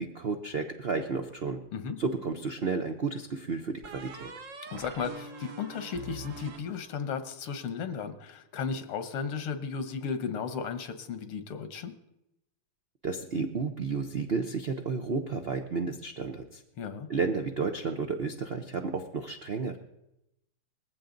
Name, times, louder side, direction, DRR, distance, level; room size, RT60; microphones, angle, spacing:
voice 1, 0.0-1.6 2.0-4.3 13.0-16.6 17.1-19.8, right 4 dB, 85° right, 5 dB, 0.5 m, -32 dB
sound 1, 2.0-2.9 3.8-7.3, right 3 dB, 50° right, 1.0 m, -45 dB
voice 2, 4.6-11.9 16.8-17.1, left 6 dB, 85° left, 9 dB, 2.0 m, -35 dB
19.5 x 15.5 x 3.9 m, 0.86 s
omnidirectional pair, 2.4 m